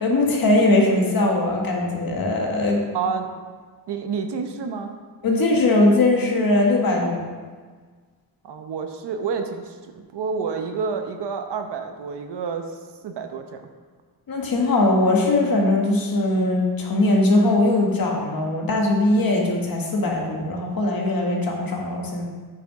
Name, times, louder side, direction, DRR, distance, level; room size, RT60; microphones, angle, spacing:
voice 1, 0.0-2.8 5.2-7.2 14.3-22.3, left 2 dB, 55° left, 0 dB, 1.7 m, -20 dB
voice 2, 2.9-3.3 3.9-5.0 8.4-13.6, right 5 dB, 80° right, 6 dB, 1.0 m, -29 dB
8.8 x 5.9 x 4.9 m, 1.5 s
wide cardioid pair, 140°, 40 cm